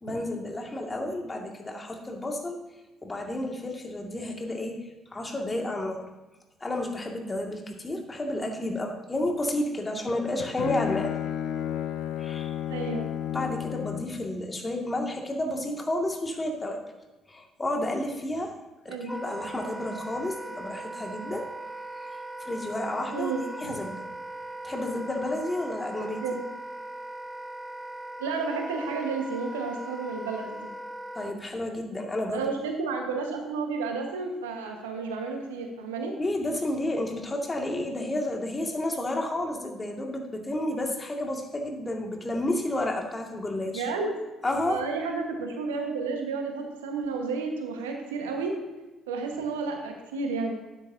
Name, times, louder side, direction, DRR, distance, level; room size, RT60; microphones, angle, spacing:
voice 1, 0.0-2.6 3.0-4.8 5.1-6.0 6.6-11.1 12.2-12.5 13.3-16.8 17.3-18.5 18.8-21.5 21.9-22.1 22.4-23.3 23.6-24.0 24.6-26.2 31.2-32.5 36.2-43.9 44.4-44.8, left 1 dB, 25° left, 1 dB, 2.1 m, -31 dB
Bowed string instrument, 10.1-14.2, left 10 dB, 60° left, 0.7 m, -32 dB
voice 2, 12.7-13.1 18.9-19.1 23.1-23.4 26.2-26.5 28.2-30.6 32.3-36.2 43.7-44.1 44.6-48.5 49.1-50.6, right 4 dB, 80° right, 3 dB, 1.4 m, -31 dB
Wind instrument woodwind instrument, 19.1-31.4, right 1 dB, 15° right, 0.8 m, -39 dB
12.5 x 9.6 x 2.8 m, 1.1 s
hypercardioid pair, 50°, 0 cm